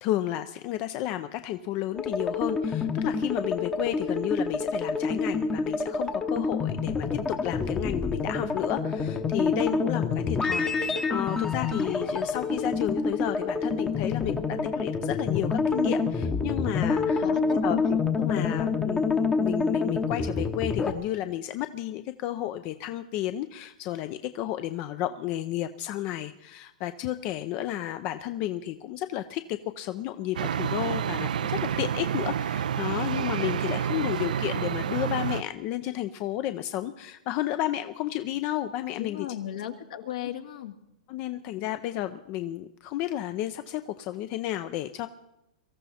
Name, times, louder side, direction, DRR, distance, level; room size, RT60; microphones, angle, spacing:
voice 1, 0.0-17.2 17.6-39.3 41.1-45.1, left 13 dB, 35° left, 10 dB, 0.6 m, -32 dB
sound 1, 1.9-20.9, left 4 dB, 10° left, 0.9 m, -27 dB
voice 2, 17.2-17.8 39.0-40.8, left 12 dB, 65° left, 4 dB, 1.8 m, -36 dB
sound 2, 30.3-35.4, right 8 dB, 85° right, 0.5 m, -29 dB
23.0 x 14.0 x 4.3 m, 0.88 s
hypercardioid pair, 150°, 4 cm